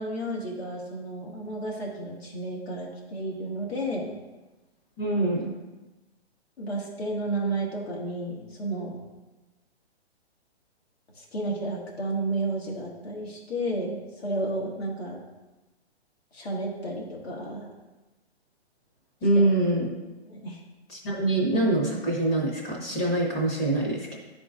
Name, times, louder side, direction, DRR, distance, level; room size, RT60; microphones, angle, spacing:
voice 1, 0.0-4.1 6.6-8.9 11.2-15.2 16.3-17.7 19.3-19.4 20.3-20.6, right 1 dB, 65° left, -2 dB, 1.8 m, -32 dB
voice 2, 5.0-5.5 19.2-19.9 20.9-24.1, right 2 dB, 15° left, -3 dB, 0.7 m, -24 dB
11.0 x 3.8 x 2.4 m, 1.1 s
hypercardioid pair, 165°, 33 cm